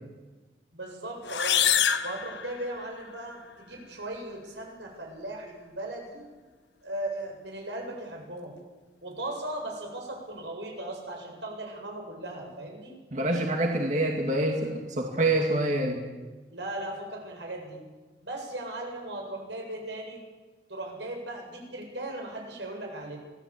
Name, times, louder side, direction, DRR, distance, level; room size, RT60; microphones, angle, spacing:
voice 1, 0.7-1.6 2.0-6.2 6.8-8.5 9.0-12.9 16.5-17.8 18.2-20.2 20.7-23.2, right 1 dB, 85° right, 1 dB, 8.0 m, -37 dB
sound 1, 1.2-3.1, left 9 dB, 80° left, 1.2 m, -26 dB
voice 2, 13.1-16.0, right 1 dB, 40° right, 1 dB, 2.4 m, -26 dB
25.5 x 18.5 x 8.7 m, 1.3 s
head